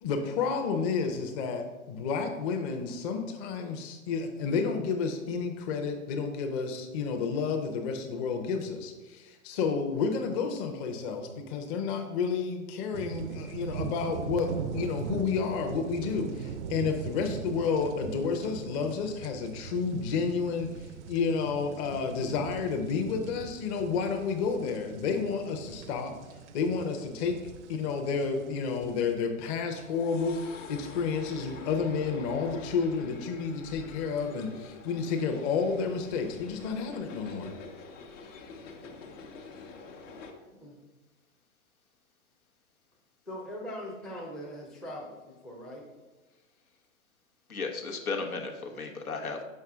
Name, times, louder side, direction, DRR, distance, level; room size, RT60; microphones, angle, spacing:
voice 1, 0.0-20.7 21.1-26.1 26.5-27.4 27.7-37.5, left 5 dB, 30° left, 5 dB, 0.8 m, -31 dB
sound 1, 12.9-29.1, right 7 dB, 55° right, 0.5 m, -40 dB
sound 2, 28.4-40.3, left 4 dB, 60° left, 1.1 m, -47 dB
voice 2, 43.3-45.9, equal, ahead, -3 dB, 0.5 m, -41 dB
voice 3, 47.5-49.4, left 4 dB, 90° left, 2 dB, 1.2 m, -34 dB
6.6 x 5.4 x 3.6 m, 1.1 s
hypercardioid pair, 120°, 42 cm